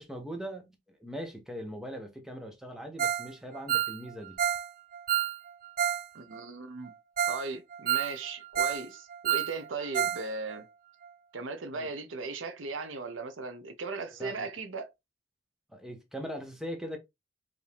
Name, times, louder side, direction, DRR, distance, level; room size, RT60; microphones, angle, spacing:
voice 1, 0.0-4.4 11.7-11.9 14.2-14.5 15.7-17.0, equal, ahead, 0.9 m, -40 dB
Ringtone, 3.0-3.3 3.5-6.1 6.3-6.4 6.9-7.0 7.2-7.4 7.7-8.9 9.1-10.2 10.5-10.6 11.0-11.1, right 10 dB, 45° right, 0.4 m, -29 dB
voice 2, 6.1-6.9 7.3-10.6 11.3-14.9, right 3 dB, 85° right, 0.8 m, -37 dB
4.9 x 2.7 x 3.4 m
head